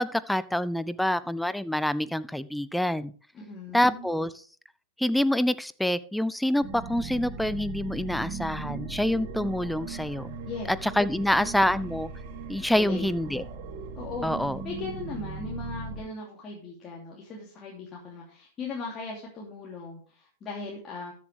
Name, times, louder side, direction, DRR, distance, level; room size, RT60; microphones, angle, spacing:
voice 1, 0.0-3.1 3.7-4.3 5.0-10.4 10.7-12.1 12.5-13.4 14.2-14.6, left 1 dB, ahead, 17 dB, 0.6 m, -26 dB
voice 2, 3.3-4.1 10.5-10.7 12.7-13.2 14.0-14.3 14.6-21.1, left 3 dB, 30° left, -3 dB, 2.8 m, -38 dB
sound 1, 6.6-16.0, right 4 dB, 50° right, 2.7 m, -39 dB
13.5 x 7.4 x 3.4 m, 0.43 s
figure-of-eight pair, 100°, 0 cm